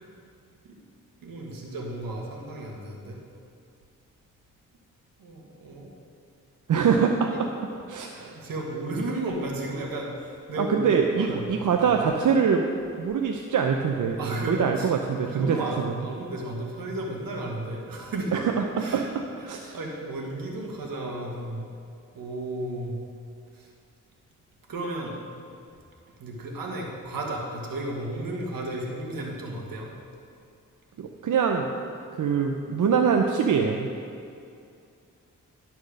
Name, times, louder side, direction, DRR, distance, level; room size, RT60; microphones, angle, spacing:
voice 1, 1.2-3.2 5.2-5.9 7.3-7.4 8.2-11.9 14.2-14.9 15.3-18.3 18.8-19.1 19.4-21.7 22.1-22.9 23.6-23.7 24.7-25.1 26.2-29.9, right 1 dB, 80° right, 0 dB, 1.6 m, -33 dB
voice 2, 6.7-7.5 7.9-8.4 10.6-14.2 14.5-15.6 18.3-19.8 31.0-31.7 32.1-33.9, right 6 dB, 60° right, 3 dB, 0.7 m, -24 dB
11.5 x 4.4 x 6.4 m, 2.5 s
cardioid pair, 50°, 34 cm